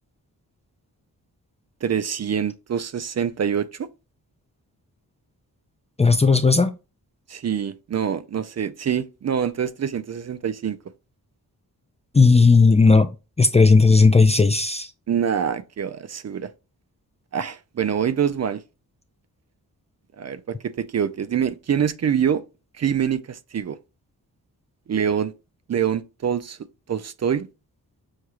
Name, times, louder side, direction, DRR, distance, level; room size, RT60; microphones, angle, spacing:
voice 1, 1.8-3.9 7.3-10.8 15.1-16.5 17.3-18.6 20.2-22.4 22.8-23.8 24.9-25.3 25.7-26.6 26.9-27.5, right 8 dB, 45° right, 0.4 m, -25 dB
voice 2, 6.0-6.7 12.1-13.1 13.4-14.9, left 4 dB, 20° left, 0.4 m, -15 dB
6.4 x 2.3 x 2.8 m
wide cardioid pair, 80°, 38 cm